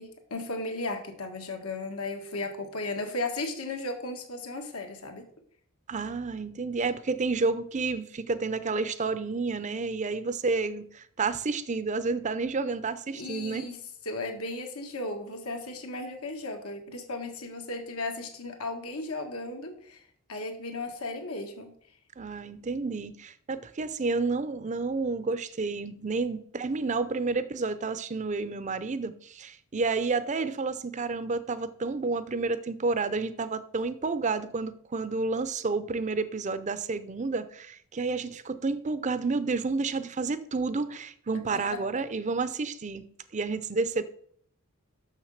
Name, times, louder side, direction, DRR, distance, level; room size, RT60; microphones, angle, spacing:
voice 1, 0.0-5.2 13.1-13.8 14.1-20.0 20.3-21.7 41.5-41.8, left 2 dB, 85° left, 3 dB, 1.7 m, -35 dB
voice 2, 5.9-13.7 22.2-43.0 43.3-44.0, right 3 dB, 35° right, 14 dB, 0.6 m, -30 dB
6.7 x 6.5 x 6.5 m, 0.62 s
head